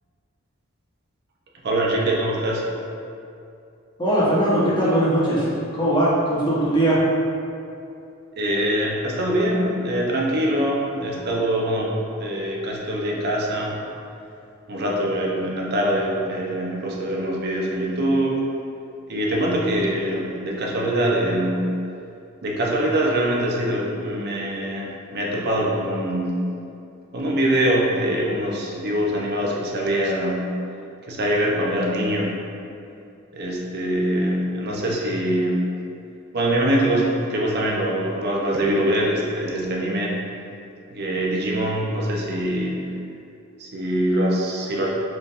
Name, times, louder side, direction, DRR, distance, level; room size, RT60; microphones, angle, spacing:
voice 1, 1.6-2.6 8.4-11.9 12.2-13.7 14.7-18.4 19.1-21.7 22.4-26.3 27.1-30.5 31.1-32.4 33.3-35.6 36.3-40.1 40.9-42.8 43.6-44.9, right 1 dB, 55° right, -3 dB, 0.6 m, -23 dB
voice 2, 4.0-5.5 5.7-7.0, right 1 dB, 25° left, -9 dB, 1.0 m, -20 dB
4.4 x 3.5 x 2.5 m, 2.6 s
head